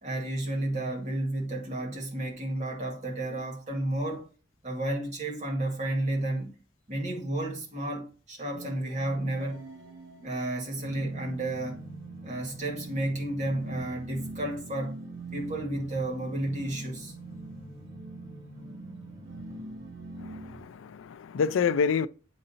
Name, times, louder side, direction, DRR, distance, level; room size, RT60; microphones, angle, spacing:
voice 1, 0.0-4.3 4.6-6.5 6.9-9.7 10.2-11.8 12.2-15.0 15.3-17.1, right 1 dB, 40° right, 2.0 m, -32 dB
sound 1, 8.5-20.6, right 2 dB, 70° right, 1.6 m, -43 dB
voice 2, 20.2-22.1, left 6 dB, 85° left, 0.4 m, -28 dB
8.7 x 3.8 x 2.8 m
head